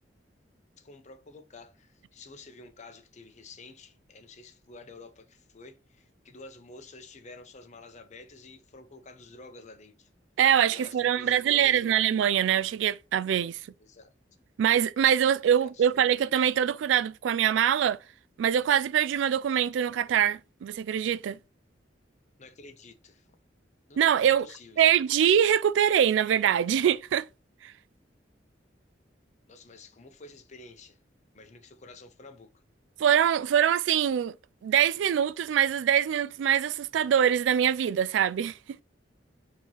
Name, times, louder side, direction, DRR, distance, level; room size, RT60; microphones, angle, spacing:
voice 1, 0.8-10.1 10.7-12.0 13.8-14.1 15.4-16.2 22.4-23.3 23.9-25.4 29.5-31.0 31.3-32.6, left 3 dB, 40° left, 0.8 m, -50 dB
voice 2, 10.4-13.6 14.6-18.0 18.4-21.4 24.0-24.5 24.8-27.3 27.6-27.7 33.0-34.3 34.6-38.6, right 9 dB, 90° right, 0.3 m, -24 dB
4.4 x 3.0 x 3.9 m
head